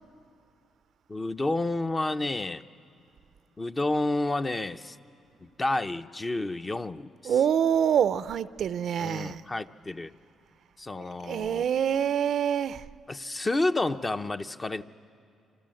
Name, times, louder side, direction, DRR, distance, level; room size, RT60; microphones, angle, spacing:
voice 1, 1.1-2.6 3.6-5.0 5.6-7.3 9.0-10.1 10.8-11.7 13.1-14.8, left 2 dB, 25° left, 0.7 m, -30 dB
voice 2, 7.2-9.4 11.2-12.8, right 8 dB, 65° right, 0.6 m, -26 dB
27.5 x 26.5 x 7.7 m
cardioid pair, 90°, 0 cm